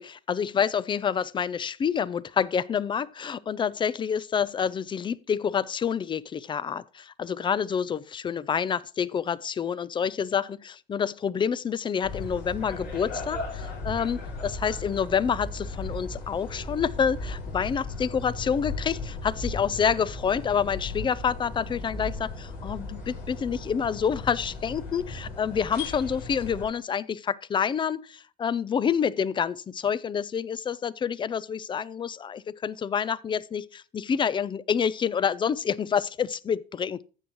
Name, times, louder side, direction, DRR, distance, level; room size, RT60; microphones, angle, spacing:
voice 1, 0.0-37.0, left 7 dB, 30° left, 0.4 m, -28 dB
sound 1, 12.0-26.7, left 2 dB, 70° left, 5.4 m, -36 dB
15.0 x 6.3 x 3.0 m
cardioid pair, 110°, 17 cm